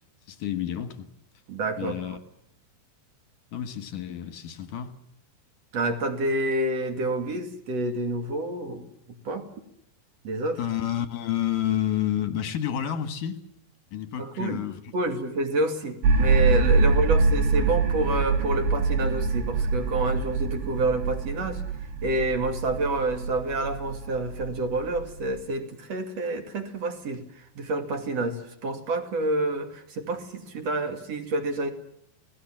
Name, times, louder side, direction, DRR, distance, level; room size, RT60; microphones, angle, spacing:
voice 1, 0.3-1.1 1.8-2.2 3.5-4.9 10.6-13.4 13.9-14.9, left 10 dB, 60° left, 10 dB, 2.5 m, -29 dB
voice 2, 1.5-2.1 5.7-8.8 9.2-9.4 10.2-10.6 14.2-14.6 14.9-21.6 22.0-31.7, right 2 dB, 40° right, 7 dB, 2.7 m, -28 dB
sound 1, 16.0-25.4, right 4 dB, 80° right, 5.8 m, -25 dB
29.5 x 19.5 x 7.5 m, 0.75 s
omnidirectional pair, 5.4 m